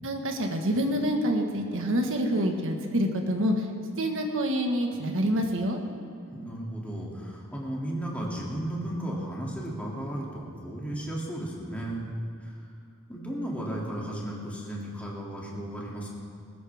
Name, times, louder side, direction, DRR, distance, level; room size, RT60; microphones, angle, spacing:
voice 1, 0.0-3.6 4.0-5.8, equal, 65° right, 3 dB, 1.7 m, -27 dB
voice 2, 6.3-12.1 12.4-12.5 13.1-16.1, right 1 dB, 5° left, -4 dB, 2.7 m, -34 dB
20.0 x 15.0 x 3.6 m, 2.4 s
head